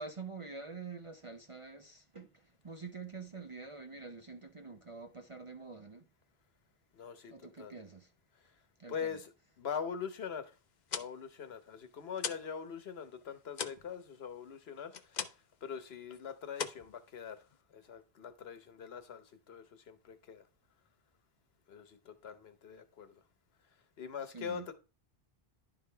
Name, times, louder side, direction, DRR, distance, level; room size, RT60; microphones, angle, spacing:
voice 1, 0.0-6.1 7.3-8.1 8.8-9.2 24.3-24.7, right 4 dB, 35° right, 0.6 m, -46 dB
voice 2, 6.9-7.7 8.9-9.3 9.6-10.5 10.9-17.4 17.7-20.4 21.7-23.1 24.0-24.7, left 7 dB, 70° left, 1.2 m, -43 dB
sound 1, 10.7-12.6 12.9-15.6 15.9-16.2 16.5-17.6, left 7 dB, 50° left, 0.7 m, -41 dB
11.0 x 5.0 x 3.3 m
omnidirectional pair, 1.1 m